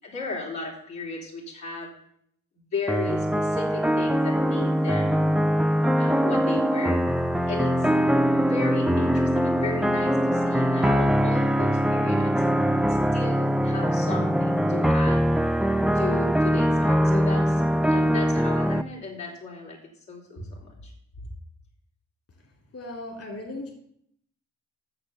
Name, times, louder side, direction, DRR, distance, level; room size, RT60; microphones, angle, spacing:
voice 1, 0.0-1.9 2.7-5.2 6.0-7.0 7.5-7.9 8.4-12.3 13.1-15.3 15.9-17.6 17.9-19.8 20.1-20.9, left 3 dB, 90° left, -4 dB, 3.6 m, -35 dB
sound 1, 2.9-18.8, equal, ahead, 0.4 m, -22 dB
voice 2, 22.7-23.7, left 2 dB, 55° left, 1 dB, 2.6 m, -37 dB
8.8 x 6.9 x 6.8 m, 0.70 s
cardioid pair, 70°, 29 cm